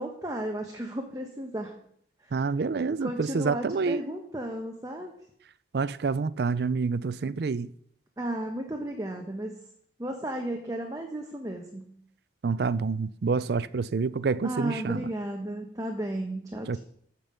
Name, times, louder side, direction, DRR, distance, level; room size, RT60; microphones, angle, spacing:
voice 1, 0.0-1.7 2.2-2.4 3.0-5.1 8.2-9.5 10.0-11.9 14.4-16.8, right 1 dB, 20° right, 0.9 m, -34 dB
voice 2, 2.3-4.0 5.7-7.7 12.4-15.0 16.7-16.8, right 4 dB, 55° right, 0.4 m, -27 dB
13.5 x 5.3 x 6.7 m
head